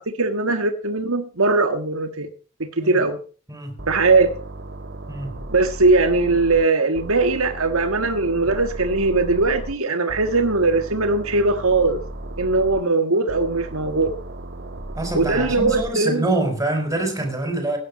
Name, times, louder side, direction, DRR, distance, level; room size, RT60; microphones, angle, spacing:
voice 1, 0.0-2.3 2.6-3.2 3.9-4.3 5.5-12.0 12.4-14.1 15.1-16.2, right 3 dB, 75° right, 1.6 m, -20 dB
sound 1, 3.8-6.6 6.9-9.7 10.1-12.8 13.3-15.9, right 1 dB, 55° right, 1.8 m, -35 dB
voice 2, 14.9-17.8, right 2 dB, 15° right, 5.0 m, -25 dB
16.5 x 10.5 x 5.2 m
head